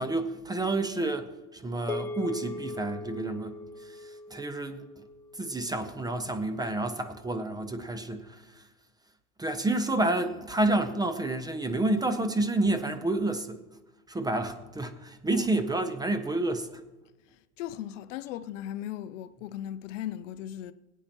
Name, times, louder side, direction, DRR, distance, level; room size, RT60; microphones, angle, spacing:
voice 1, 0.0-4.8 5.4-8.4 9.4-13.6 14.1-16.8, right 2 dB, 10° right, 0.7 m, -29 dB
sound 1, 1.9-6.4, left 2 dB, 5° left, 1.5 m, -40 dB
voice 2, 17.6-20.7, left 12 dB, 55° left, 0.6 m, -37 dB
21.5 x 9.0 x 3.0 m
hypercardioid pair, 90°, 45 cm